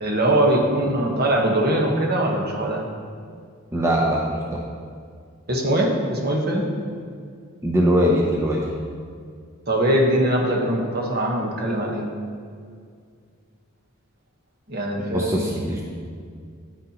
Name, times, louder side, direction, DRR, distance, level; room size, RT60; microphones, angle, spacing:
voice 1, 0.0-2.8 5.5-6.7 9.7-12.1 14.7-15.5, right 1 dB, 50° right, 0 dB, 1.3 m, -22 dB
voice 2, 3.7-4.6 7.6-8.6 15.1-15.8, equal, 15° right, -2 dB, 0.6 m, -21 dB
9.5 x 9.0 x 3.0 m, 2.2 s
head